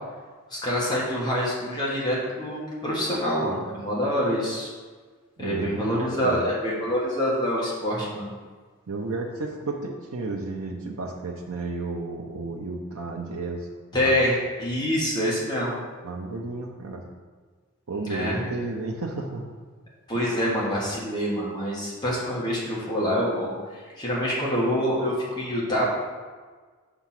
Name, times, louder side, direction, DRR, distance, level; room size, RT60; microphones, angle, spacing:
voice 1, 0.5-4.7 5.4-8.3 13.9-15.8 17.9-18.5 20.1-25.9, equal, 20° left, -6 dB, 1.3 m, -26 dB
voice 2, 5.4-6.4 8.9-13.7 14.0-14.2 16.0-17.0 17.9-19.5, right 3 dB, 75° right, 0 dB, 0.6 m, -32 dB
6.0 x 3.5 x 5.8 m, 1.5 s
head